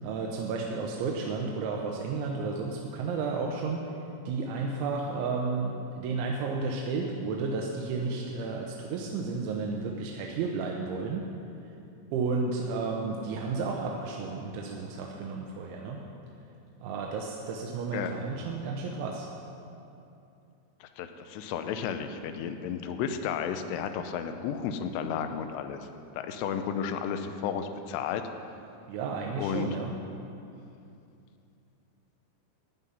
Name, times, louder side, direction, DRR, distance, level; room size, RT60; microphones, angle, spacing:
voice 1, 0.0-3.9 4.3-11.2 12.1-16.0 16.8-19.3 28.9-29.9, right 4 dB, 90° right, 0 dB, 3.3 m, -32 dB
voice 2, 20.8-25.8 26.1-28.2 29.4-29.7, left 7 dB, 80° left, 8 dB, 2.7 m, -33 dB
15.0 x 5.6 x 9.7 m, 2.6 s
omnidirectional pair, 5.3 m